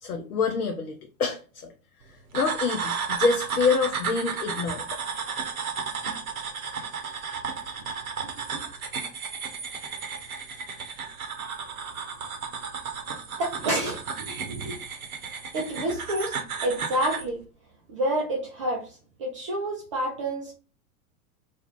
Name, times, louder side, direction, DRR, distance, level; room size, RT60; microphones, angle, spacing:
voice 1, 0.0-1.7 2.3-5.0, left 4 dB, 75° left, 4 dB, 0.5 m, -26 dB
sound 1, 2.3-17.3, right 6 dB, 70° right, 0.7 m, -33 dB
voice 2, 13.4-14.8 15.5-17.4 17.9-18.9 19.2-20.5, right 1 dB, 25° right, -1 dB, 0.3 m, -29 dB
2.3 x 2.2 x 2.9 m, 0.36 s
figure-of-eight pair, 90°, 45 cm